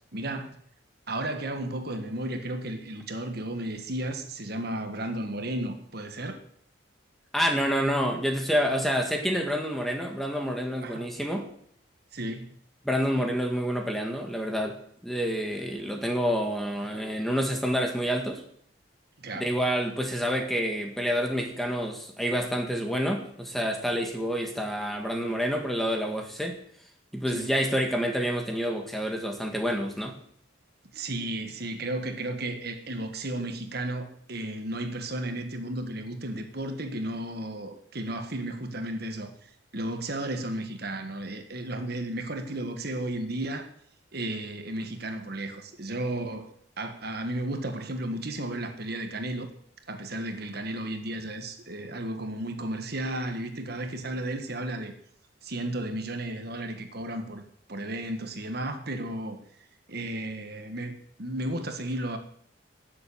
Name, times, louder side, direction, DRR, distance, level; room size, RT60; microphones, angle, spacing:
voice 1, 0.1-0.6 1.1-6.4 10.8-11.0 12.1-12.5 19.2-19.6 27.3-27.5 30.9-39.3 39.7-43.7 44.1-46.5 46.8-49.5 49.9-54.9 55.4-57.4 57.7-59.4 59.9-62.2, right 1 dB, 55° right, 1.6 m, -33 dB
voice 2, 7.3-11.5 12.8-14.8 15.0-18.4 19.4-26.6 27.1-30.2, equal, ahead, 1.8 m, -28 dB
12.5 x 7.7 x 8.7 m
head